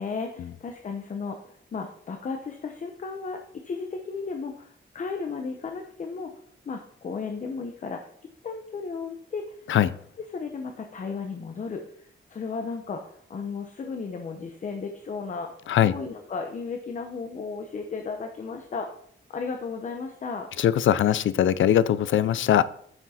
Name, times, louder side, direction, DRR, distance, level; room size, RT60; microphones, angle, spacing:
voice 1, 0.0-6.3 6.7-8.0 8.4-9.6 10.3-15.5 15.8-18.9 19.3-20.5, left 4 dB, 40° left, 5 dB, 0.7 m, -34 dB
voice 2, 20.6-22.7, left 10 dB, 75° left, 17 dB, 0.5 m, -21 dB
9.0 x 6.1 x 4.2 m, 0.64 s
wide cardioid pair, 175°, 20 cm